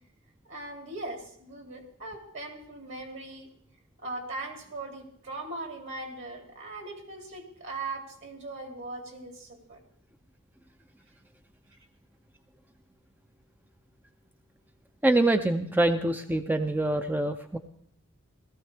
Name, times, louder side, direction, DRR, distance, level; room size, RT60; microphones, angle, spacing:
voice 1, 0.4-3.5 4.0-9.8, right 2 dB, 60° right, 2 dB, 2.8 m, -39 dB
voice 2, 15.0-17.6, right 2 dB, 10° right, 7 dB, 0.4 m, -25 dB
17.5 x 14.0 x 3.4 m, 0.67 s
head